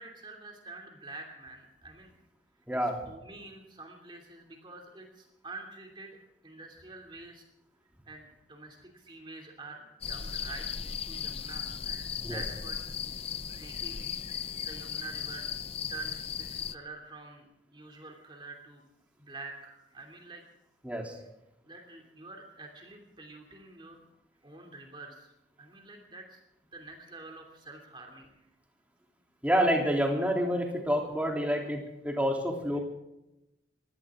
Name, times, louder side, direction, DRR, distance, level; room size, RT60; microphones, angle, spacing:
voice 1, 0.0-2.1 2.8-6.2 6.4-7.4 8.0-12.8 13.1-14.1 14.6-15.5 15.9-18.8 19.2-20.4 21.6-24.0 24.4-26.4 26.7-28.3, right 3 dB, 25° right, 2 dB, 2.8 m, -47 dB
voice 2, 2.7-3.0 12.2-12.4 20.8-21.2 29.4-32.8, equal, 10° right, 0 dB, 3.2 m, -28 dB
sound 1, 10.0-16.8, left 8 dB, 30° left, 0.6 m, -37 dB
22.5 x 17.0 x 3.8 m, 0.90 s
head